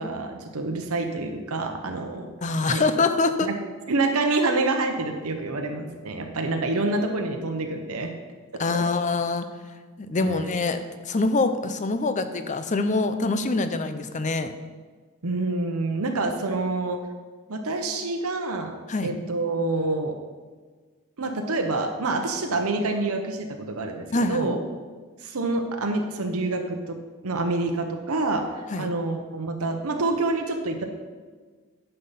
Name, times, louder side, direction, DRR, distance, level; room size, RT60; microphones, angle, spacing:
voice 1, 0.0-2.3 2.6-2.8 3.4-3.5 3.9-8.1 8.7-8.8 10.2-10.6 15.2-17.0 17.5-18.7 19.0-20.1 21.2-24.6 25.2-27.0 27.2-30.9, right 2 dB, 75° right, 4 dB, 0.9 m, -27 dB
voice 2, 2.4-3.5 8.6-9.5 10.0-10.8 11.1-14.5 18.9-19.1 24.1-24.5 28.7-28.9, left 3 dB, 35° left, 10 dB, 0.6 m, -24 dB
10.0 x 5.7 x 5.7 m, 1.4 s
head